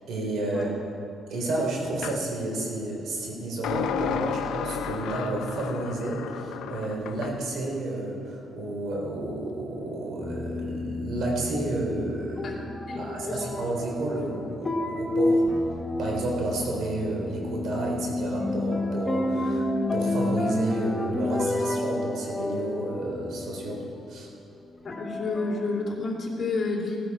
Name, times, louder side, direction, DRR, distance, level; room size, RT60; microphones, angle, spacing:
voice 1, 0.1-0.9 1.3-12.6 12.9-15.4 16.0-19.6 19.9-23.8 24.1-24.3, right 2 dB, 70° right, -1 dB, 3.7 m, -31 dB
sound 1, 2.0-2.2 3.6-7.4, left 8 dB, 85° left, 0.7 m, -32 dB
sound 2, 10.2-24.3 24.8-25.9, left 1 dB, 20° left, 1.1 m, -30 dB
voice 2, 24.8-27.0, left 3 dB, 45° left, -2 dB, 3.1 m, -30 dB
17.5 x 10.5 x 4.8 m, 2.6 s
cardioid pair, 90°, 0 cm